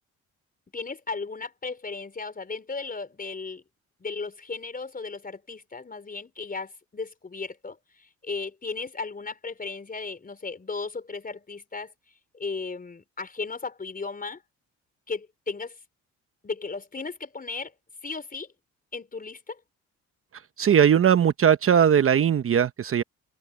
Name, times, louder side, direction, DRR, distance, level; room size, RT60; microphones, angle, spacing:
voice 1, 0.7-3.6 4.0-11.9 12.3-14.4 15.1-15.8 16.4-17.7 18.0-18.5 18.9-19.6, left 4 dB, 30° left, 4.6 m, -35 dB
voice 2, 20.6-23.0, right 8 dB, 45° right, 1.0 m, -19 dB
cardioid pair, 90°, 30 cm